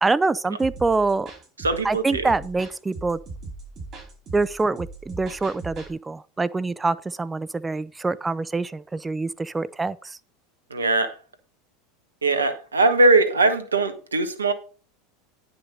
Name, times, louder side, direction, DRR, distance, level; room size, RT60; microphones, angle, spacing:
voice 1, 0.0-1.3 1.8-3.2 4.3-10.0, right 3 dB, 15° right, 0.5 m, -25 dB
sound 1, 0.6-5.9, right 3 dB, 40° right, 4.7 m, -39 dB
voice 2, 1.6-2.3 10.7-11.1 12.2-14.5, right 3 dB, 90° right, 1.3 m, -20 dB
9.8 x 6.0 x 5.3 m
hypercardioid pair, 85°, 0 cm